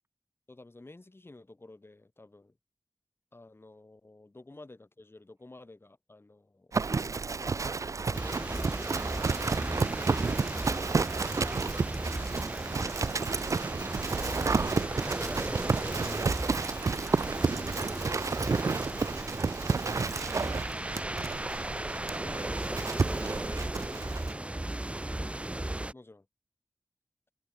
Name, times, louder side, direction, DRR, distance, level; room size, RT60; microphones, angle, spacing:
voice 1, 0.5-2.6 3.3-10.0 22.2-23.1 25.9-26.3, left 2 dB, 40° left, 3.4 m, -53 dB
Livestock farm animals working animals, 6.7-24.3, right 4 dB, 60° right, 0.4 m, -31 dB
sound 1, 8.1-25.9, right 1 dB, 20° right, 0.8 m, -36 dB
voice 2, 14.3-17.8 18.0-21.3 22.9-25.2, right 2 dB, 45° right, 5.9 m, -53 dB
wide cardioid pair, 55°, 6 cm